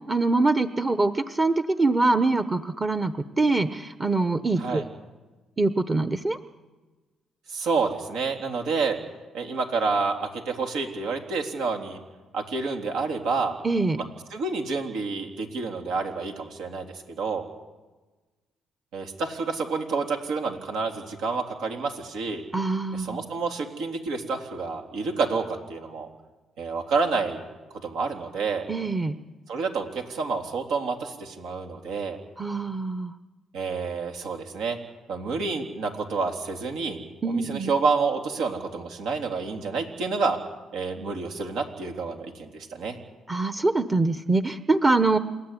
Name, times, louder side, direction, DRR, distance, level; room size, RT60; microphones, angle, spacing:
voice 1, 0.1-4.8 5.6-6.4 13.6-14.0 22.5-23.2 28.7-29.2 32.4-33.1 37.2-37.7 43.3-45.2, right 3 dB, 25° right, 10 dB, 1.0 m, -24 dB
voice 2, 7.5-9.0 9.3-12.0 12.3-13.6 14.0-14.1 14.3-17.4 18.9-22.4 22.9-26.1 26.6-27.4 27.7-28.7 29.5-32.2 33.5-34.8 35.1-40.4 40.7-43.0, right 4 dB, 85° right, 4 dB, 3.5 m, -29 dB
28.0 x 13.5 x 9.9 m, 1.2 s
cardioid pair, 90°, 0 cm